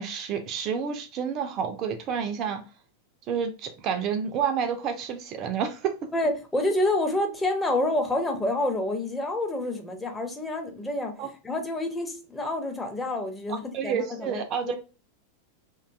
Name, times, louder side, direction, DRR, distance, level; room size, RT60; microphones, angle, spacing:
voice 1, 0.0-2.6 3.3-5.9 11.2-11.3 13.5-14.7, right 7 dB, 35° right, 0.3 m, -29 dB
voice 2, 6.1-14.8, left 1 dB, 10° left, 0.6 m, -28 dB
2.5 x 2.2 x 2.3 m
figure-of-eight pair, 90°, 0 cm